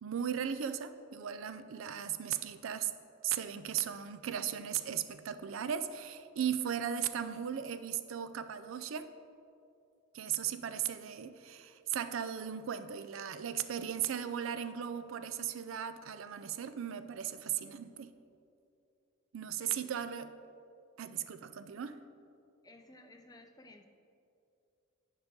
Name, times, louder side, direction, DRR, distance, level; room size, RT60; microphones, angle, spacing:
voice 1, 0.0-2.9 3.2-9.1 10.1-18.1 19.3-20.3 21.0-22.0, right 9 dB, 70° right, 11 dB, 0.4 m, -37 dB
voice 2, 22.6-23.8, left 2 dB, 20° left, 5 dB, 0.5 m, -56 dB
9.7 x 4.9 x 3.8 m, 2.5 s
head